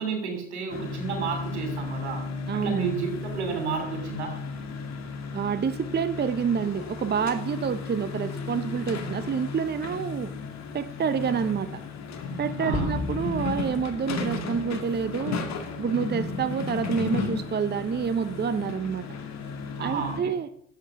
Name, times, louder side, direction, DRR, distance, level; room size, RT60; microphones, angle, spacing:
voice 1, 0.0-2.2 2.5-3.1 3.3-4.3 12.6-12.9 19.8-20.3, right 6 dB, 85° right, 4 dB, 3.1 m, -31 dB
sound 1, 0.7-20.2, left 4 dB, 55° left, 2.3 m, -34 dB
voice 2, 2.5-2.9 5.3-10.3 10.7-11.8 12.4-15.4 15.8-19.1 19.8-20.5, right 6 dB, 30° right, 13 dB, 0.8 m, -28 dB
sound 2, 12.7-15.3, left 2 dB, 20° left, 2.9 m, -36 dB
12.0 x 7.9 x 7.4 m, 0.70 s
hypercardioid pair, 50°, 33 cm